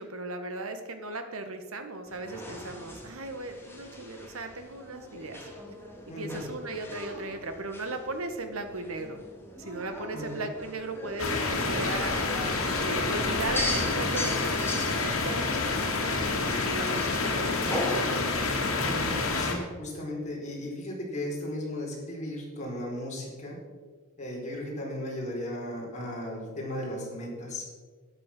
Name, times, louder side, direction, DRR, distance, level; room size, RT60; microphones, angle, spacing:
voice 1, 0.0-5.5 6.2-9.2 9.6-12.2 12.8-18.4, right 2 dB, 75° right, 7 dB, 1.6 m, -37 dB
sound 1, 2.1-18.5, left 1 dB, 10° left, 2.5 m, -39 dB
voice 2, 6.1-6.4 10.1-10.4 18.8-23.6 24.2-27.6, left 1 dB, 35° left, -3 dB, 4.6 m, -36 dB
sound 2, 11.2-19.5, left 3 dB, 70° left, 2.6 m, -28 dB
12.5 x 9.9 x 6.1 m, 1.4 s
head